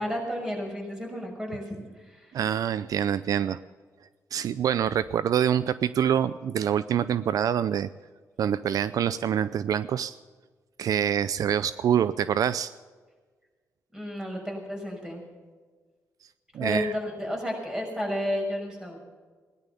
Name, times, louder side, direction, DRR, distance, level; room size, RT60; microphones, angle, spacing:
voice 1, 0.0-2.3 13.9-15.2 16.6-19.0, equal, 10° right, 0 dB, 6.1 m, -32 dB
voice 2, 2.3-3.6 4.3-7.9 8.4-10.2 10.8-12.7 16.5-16.9, right 9 dB, 70° right, 15 dB, 0.5 m, -25 dB
17.5 x 11.5 x 7.0 m, 1.5 s
cardioid pair, 85°, 6 cm